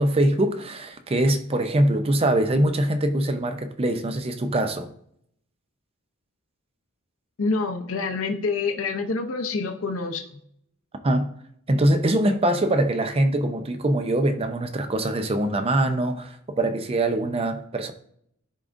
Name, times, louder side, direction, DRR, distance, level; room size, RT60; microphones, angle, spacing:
voice 1, 0.0-4.9 11.0-11.3 11.7-17.9, right 1 dB, 30° right, 0.5 m, -23 dB
voice 2, 7.4-10.2, left 4 dB, 70° left, 0.6 m, -27 dB
10.5 x 3.7 x 2.6 m
head